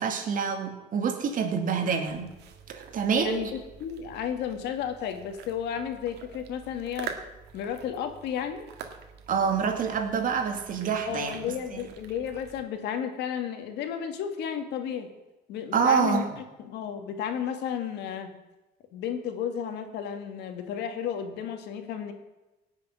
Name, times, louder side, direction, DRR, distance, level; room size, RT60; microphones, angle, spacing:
voice 1, 0.0-2.3 2.7-3.4 9.3-11.4 11.7-11.8 15.7-16.4, right 6 dB, 55° right, 5 dB, 2.5 m, -27 dB
sound 1, 2.1-12.6, right 7 dB, 80° right, 1.8 m, -46 dB
voice 2, 3.1-7.1 7.5-8.7 11.1-15.1 15.5-16.2 16.6-18.3 18.9-22.1, left 8 dB, 80° left, 6 dB, 2.1 m, -33 dB
17.5 x 6.8 x 9.4 m, 1.0 s
cardioid pair, 110°, 17 cm